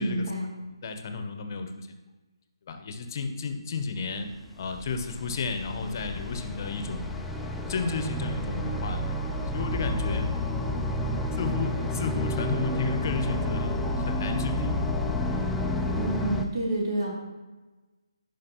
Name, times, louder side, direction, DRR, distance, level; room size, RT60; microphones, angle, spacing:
voice 1, 0.0-0.5 15.9-17.1, right 1 dB, 60° right, -3 dB, 2.6 m, -29 dB
voice 2, 0.6-2.0 2.7-7.2 7.7-9.1 9.5-10.3 11.3-13.7 14.0-14.9, left 4 dB, 40° left, 6 dB, 0.7 m, -32 dB
sound 1, 4.3-16.4, left 1 dB, 5° left, 0.3 m, -30 dB
10.5 x 5.1 x 3.0 m, 1.2 s
figure-of-eight pair, 150°, 3 cm